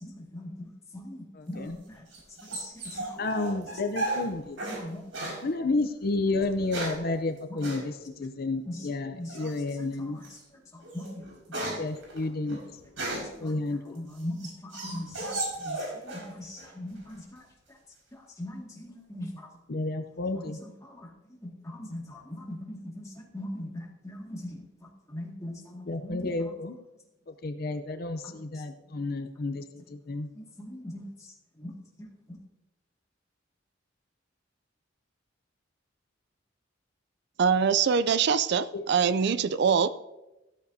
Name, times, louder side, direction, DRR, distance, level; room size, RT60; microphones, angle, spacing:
voice 1, 0.0-1.8 2.5-3.2 4.6-5.0 8.7-8.8 9.1-9.5 10.9-11.2 11.6-11.7 13.4-13.5 13.9-15.3 15.6-15.8 16.0-17.2 18.4-19.5 21.0-21.1 21.4-23.1 23.3-24.6 25.1-26.3 28.2-28.3 30.4-31.1 31.6-31.7 32.0-32.1, left 1 dB, 15° left, -1 dB, 2.0 m, -40 dB
voice 2, 1.3-1.8 3.2-4.6 5.4-10.2 11.8-12.6 13.4-14.0 19.7-20.6 25.8-26.8 27.3-30.3 38.7-38.8, left 2 dB, 50° left, 7 dB, 0.6 m, -31 dB
sound 1, 1.5-4.8 5.1-5.4 6.3-7.1 7.6-7.8 9.3-9.7 10.2-10.4 10.8-13.4 14.0-16.3 16.6-17.2, right 2 dB, 75° right, 5.2 m, -35 dB
voice 3, 37.4-39.9, right 6 dB, 60° right, 15 dB, 0.4 m, -23 dB
14.5 x 13.0 x 2.7 m, 0.98 s
head